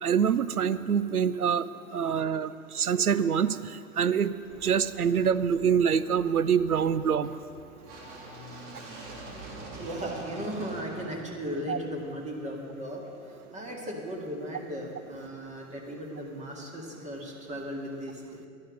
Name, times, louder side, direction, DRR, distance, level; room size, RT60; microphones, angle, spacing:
voice 1, 0.0-1.7 1.9-4.3 4.6-7.3 11.7-11.8, right 7 dB, 85° right, 15 dB, 0.5 m, -25 dB
sound 1, 4.5-12.5, right 2 dB, 55° right, 2.6 m, -46 dB
voice 2, 9.4-18.5, equal, 15° right, 0 dB, 2.0 m, -37 dB
11.5 x 11.0 x 6.4 m, 2.6 s
figure-of-eight pair, 95°, 43 cm